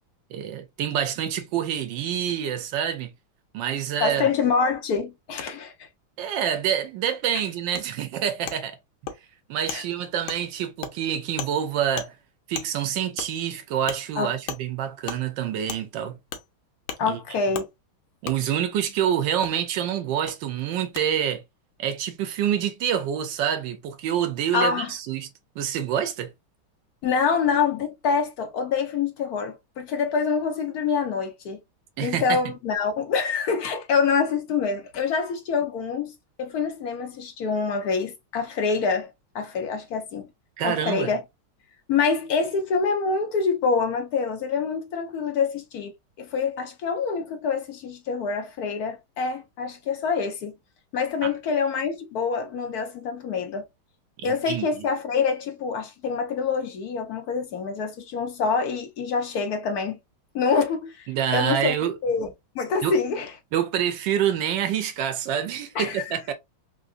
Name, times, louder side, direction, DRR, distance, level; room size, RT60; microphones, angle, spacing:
voice 1, 0.3-3.1 3.5-4.3 6.2-8.8 9.5-12.1 12.5-16.2 17.1-17.2 18.2-21.4 21.8-25.3 25.6-26.3 32.0-32.4 40.6-41.1 51.2-51.3 54.2-54.7 61.1-62.0 62.8-62.9 63.5-66.3, right 9 dB, 75° right, 1.2 m, -27 dB
voice 2, 4.0-5.9 7.3-7.4 9.7-9.8 14.2-14.3 17.0-17.7 24.5-24.9 27.0-31.6 32.0-36.1 36.4-40.3 40.6-41.2 41.9-45.9 46.2-50.5 50.9-53.6 54.2-60.0 60.3-61.8 62.0-62.3 62.5-63.3 65.7-66.1, left 5 dB, 70° left, 0.9 m, -26 dB
Wood, 7.8-7.9 8.5-8.6 9.1-9.2 9.7-9.8 10.3-10.4 10.8-10.9 11.4-11.5 12.0-12.1 12.6-12.7 13.2-13.3 13.9-14.0 14.5-14.6 15.1-15.2 15.7-15.8 16.3-16.5 16.9-17.0 17.5-17.7 18.3-18.4 19.4-19.5 20.3-20.4 21.0-21.1, left 8 dB, 85° left, 1.5 m, -34 dB
3.8 x 2.6 x 2.4 m
omnidirectional pair, 2.2 m